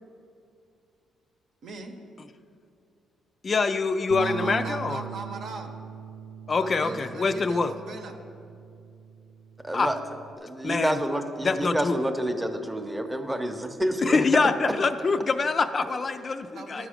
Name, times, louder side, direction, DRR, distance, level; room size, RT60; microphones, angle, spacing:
voice 1, 1.6-1.9 4.2-5.7 6.6-8.2 16.5-16.9, right 3 dB, 70° right, 4 dB, 0.9 m, -40 dB
voice 2, 3.4-5.0 6.5-7.7 9.7-9.9 10.6-11.0 11.4-12.0 14.0-16.9, left 4 dB, 40° left, 9 dB, 0.3 m, -25 dB
Bass guitar, 4.1-10.4, right 7 dB, 85° right, 0.3 m, -40 dB
voice 3, 9.6-10.0 10.4-14.4, right 1 dB, 10° right, 5 dB, 0.7 m, -28 dB
12.0 x 4.9 x 5.0 m, 2.5 s
cardioid pair, 90°, 0 cm